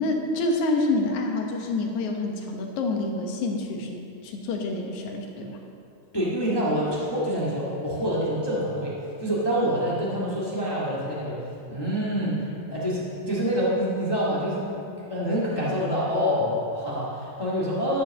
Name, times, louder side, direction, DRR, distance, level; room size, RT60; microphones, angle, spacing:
voice 1, 0.0-4.0 4.2-5.6, left 2 dB, 70° left, 2 dB, 2.4 m, -27 dB
voice 2, 6.1-18.0, equal, 40° left, -7 dB, 0.3 m, -26 dB
12.5 x 5.6 x 6.4 m, 2.6 s
omnidirectional pair, 3.7 m